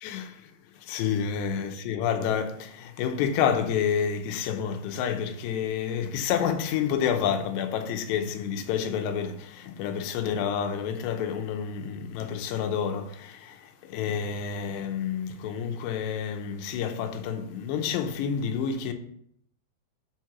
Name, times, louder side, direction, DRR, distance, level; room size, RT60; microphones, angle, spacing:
voice 1, 0.0-0.4 0.8-18.9, left 7 dB, 85° left, 3.0 m, -29 dB
7.3 x 4.7 x 5.9 m
omnidirectional pair, 4.9 m